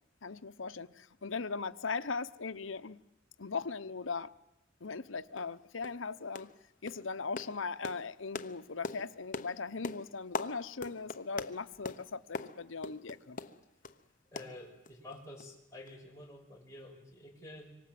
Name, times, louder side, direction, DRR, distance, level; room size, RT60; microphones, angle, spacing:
voice 1, 0.2-3.0 3.4-4.3 4.8-6.5 6.8-13.4, left 4 dB, 80° left, 0.9 m, -39 dB
sound 1, 4.8-4.9 5.4-5.5 5.8-6.0 6.3-6.6 6.9-14.0 14.4-15.1 15.4-15.5 15.9-16.0, left 3 dB, 45° left, 1.0 m, -43 dB
voice 2, 14.3-17.7, left 1 dB, 15° left, 6.2 m, -49 dB
26.5 x 24.5 x 7.7 m
head